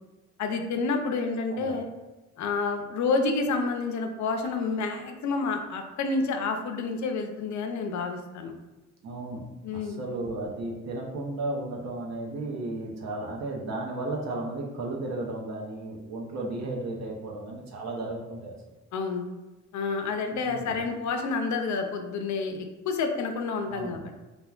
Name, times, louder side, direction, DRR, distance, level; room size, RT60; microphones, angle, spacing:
voice 1, 0.4-1.9 2.4-8.5 9.6-10.0 18.9-19.3 19.7-24.2, left 4 dB, 70° left, 5 dB, 0.5 m, -29 dB
voice 2, 9.0-9.4 9.7-18.6 20.3-20.8 23.7-24.0, right 2 dB, 60° right, -1 dB, 0.6 m, -34 dB
3.3 x 2.1 x 2.3 m, 1.1 s
cardioid pair, 105°, 30 cm